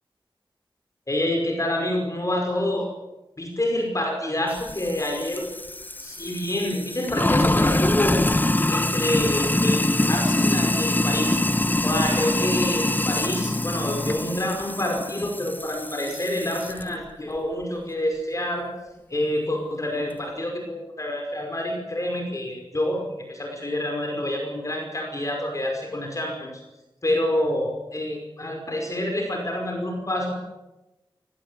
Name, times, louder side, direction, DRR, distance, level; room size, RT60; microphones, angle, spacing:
voice 1, 1.1-2.9 3.4-5.5 6.0-8.2 8.7-11.4 11.8-18.7 19.1-26.5 27.0-30.3, left 1 dB, 35° left, 2 dB, 5.3 m, -27 dB
Sink (filling or washing), 4.5-16.8, left 1 dB, 20° left, 1.1 m, -24 dB
22.5 x 18.0 x 8.4 m, 1.0 s
wide cardioid pair, 80°, 9 cm